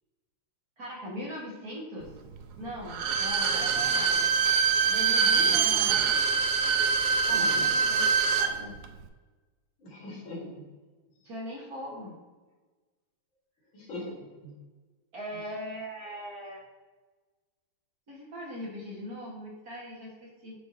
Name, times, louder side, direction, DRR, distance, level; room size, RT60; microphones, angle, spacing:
voice 1, 0.8-2.1 2.6-4.3 4.9-6.2 7.3-8.7 11.2-12.1 15.1-16.6 18.1-20.6, equal, 45° right, -5 dB, 2.1 m, -40 dB
Bowed string instrument, 2.9-8.5 8.8-8.9, right 6 dB, 90° right, 0.9 m, -24 dB
voice 2, 3.5-3.9 5.3-6.1 7.3-7.6 9.8-10.7 13.7-14.5 15.3-15.4, left 1 dB, 65° left, -3 dB, 2.8 m, -41 dB
10.0 x 4.4 x 2.9 m, 1.3 s
omnidirectional pair, 2.4 m